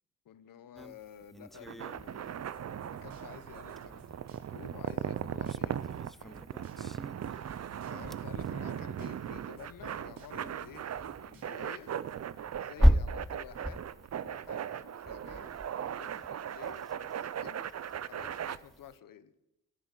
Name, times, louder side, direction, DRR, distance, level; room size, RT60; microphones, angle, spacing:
voice 1, 0.2-10.9 11.2-11.9 12.6-13.8 14.2-15.5 15.9-19.3, left 9 dB, 80° left, 13 dB, 1.0 m, -52 dB
sound 1, 0.8-19.0, equal, ahead, 0.4 m, -36 dB
sound 2, 1.5-18.6, right 9 dB, 50° right, 0.6 m, -38 dB
sound 3, 2.5-4.6 4.9-7.0 7.2-9.3 9.6-11.9, right 2 dB, 90° right, 2.5 m, -58 dB
11.5 x 9.4 x 8.3 m, 0.87 s
cardioid pair, 75°, 33 cm